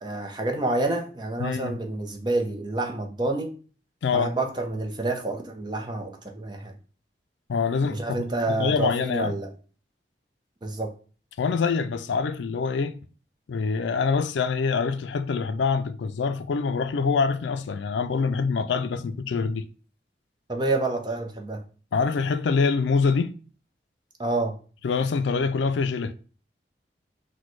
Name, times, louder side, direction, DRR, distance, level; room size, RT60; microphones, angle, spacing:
voice 1, 0.0-3.5 4.1-6.7 7.9-9.5 10.6-10.9 20.5-21.6 24.2-24.6, right 2 dB, 25° right, 0.6 m, -28 dB
voice 2, 1.4-1.7 4.0-4.3 7.5-9.4 11.4-13.0 13.5-19.6 21.9-23.3 24.8-26.1, left 5 dB, 80° left, 0.4 m, -25 dB
6.1 x 2.2 x 3.1 m
head